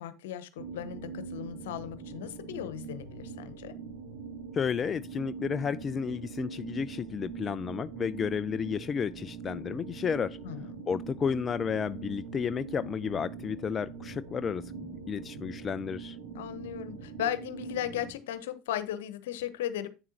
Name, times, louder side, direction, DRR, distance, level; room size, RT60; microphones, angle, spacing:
voice 1, 0.0-3.7 10.4-10.8 16.3-19.9, left 11 dB, 70° left, 1.0 m, -36 dB
sound 1, 0.6-18.1, right 5 dB, 55° right, 2.6 m, -42 dB
voice 2, 4.5-10.4 10.9-16.2, left 6 dB, 30° left, 0.4 m, -32 dB
8.8 x 7.3 x 2.9 m
hypercardioid pair, 80°, 0 cm